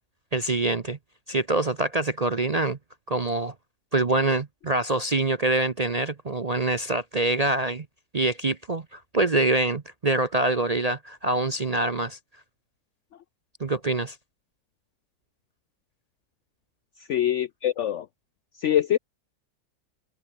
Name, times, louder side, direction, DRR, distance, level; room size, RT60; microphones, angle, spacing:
voice 1, 0.3-1.0 1.3-2.8 3.1-3.5 3.9-7.9 8.1-12.2 13.6-14.2, right 2 dB, 35° right, 0.6 m, -25 dB
voice 2, 17.1-18.1 18.6-19.0, left 11 dB, 70° left, 0.7 m, -24 dB
omnidirectional pair, 1.7 m